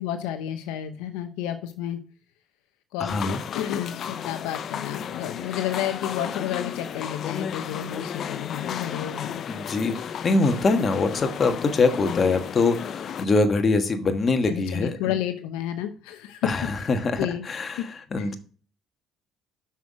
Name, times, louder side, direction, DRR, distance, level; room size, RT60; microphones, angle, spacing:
voice 1, 0.0-2.0 2.9-9.4 14.5-16.5 17.2-17.4 17.8-17.9 18.2-18.3, left 11 dB, 85° left, 8 dB, 0.7 m, -31 dB
voice 2, 3.0-3.4 9.5-15.2 16.4-18.3, left 3 dB, 35° left, 7 dB, 1.4 m, -24 dB
sound 1, 3.1-13.3, left 8 dB, 55° left, 0.6 m, -33 dB
6.1 x 5.8 x 4.7 m, 0.39 s
supercardioid pair, 85°, 0 cm